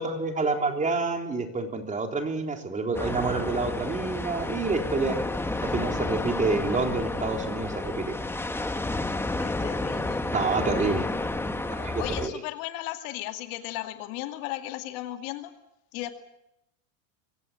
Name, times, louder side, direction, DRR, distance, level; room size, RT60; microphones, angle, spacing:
voice 1, 0.0-5.2 5.6-8.2 10.3-11.1 11.7-12.3, right 3 dB, 20° right, 4 dB, 3.6 m, -28 dB
sound 1, 2.9-12.3, left 2 dB, 5° left, 1.3 m, -31 dB
voice 2, 9.4-10.2 12.0-15.5 15.9-16.2, left 15 dB, 60° left, 6 dB, 2.5 m, -35 dB
24.0 x 16.5 x 8.6 m, 0.84 s
supercardioid pair, 120°, 39 cm